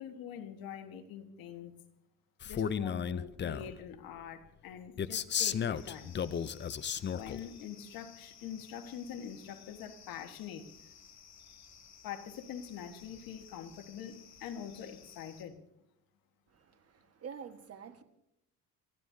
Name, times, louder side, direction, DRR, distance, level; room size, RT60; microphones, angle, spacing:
voice 1, 0.0-1.7 2.4-6.2 7.1-10.7 12.0-15.6, left 8 dB, 85° left, 1.6 m, -44 dB
Male speech man speaking, 2.4-3.7 5.0-7.4, left 8 dB, 30° left, 0.6 m, -34 dB
sound 1, 5.7-15.4, left 7 dB, 50° left, 1.9 m, -57 dB
voice 2, 16.5-18.0, right 7 dB, 45° right, 1.6 m, -48 dB
30.0 x 15.0 x 2.8 m
cardioid pair, 110°, 34 cm